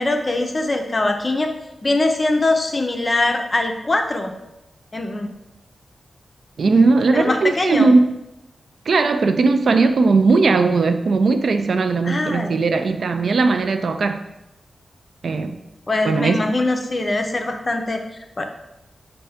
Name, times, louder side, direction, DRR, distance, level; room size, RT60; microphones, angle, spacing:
voice 1, 0.0-1.5 1.8-4.3 4.9-5.3 7.1-7.9 12.0-12.6 15.9-18.4, left 2 dB, 30° left, 4 dB, 0.5 m, -22 dB
voice 2, 6.6-8.1 8.9-14.2 15.2-15.6 16.0-16.4, right 3 dB, 65° right, 8 dB, 0.3 m, -18 dB
5.5 x 2.6 x 3.4 m, 0.91 s
wide cardioid pair, 140°, 0 cm